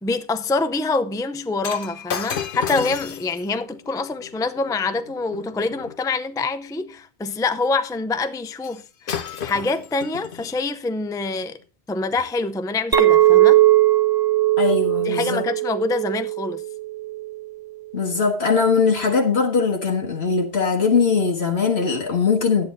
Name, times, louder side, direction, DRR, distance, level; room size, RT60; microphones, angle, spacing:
voice 1, 0.0-11.6 11.9-13.6 15.0-16.6, left 3 dB, 5° left, 0.4 m, -25 dB
Shatter, 1.6-6.0 8.6-8.8 9.1-10.6 11.3-11.5, left 7 dB, 60° left, 0.9 m, -33 dB
Chink clink, 12.9-17.4, right 15 dB, 25° right, 0.8 m, -18 dB
voice 2, 14.6-15.4 17.9-22.7, left 5 dB, 75° left, 1.8 m, -20 dB
11.0 x 8.6 x 4.1 m
omnidirectional pair, 1.1 m